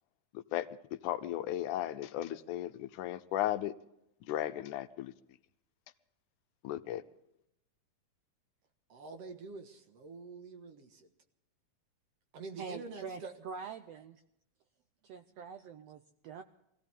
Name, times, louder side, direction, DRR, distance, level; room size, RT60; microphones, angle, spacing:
voice 1, 0.3-3.7 4.3-5.1 6.6-7.0, left 13 dB, 85° left, 2.2 m, -35 dB
voice 2, 8.9-11.1 12.3-13.3 15.4-15.5, right 3 dB, 55° right, 2.3 m, -46 dB
voice 3, 12.6-14.2 15.0-16.4, right 6 dB, 75° right, 1.5 m, -45 dB
24.0 x 16.0 x 3.6 m
omnidirectional pair, 3.5 m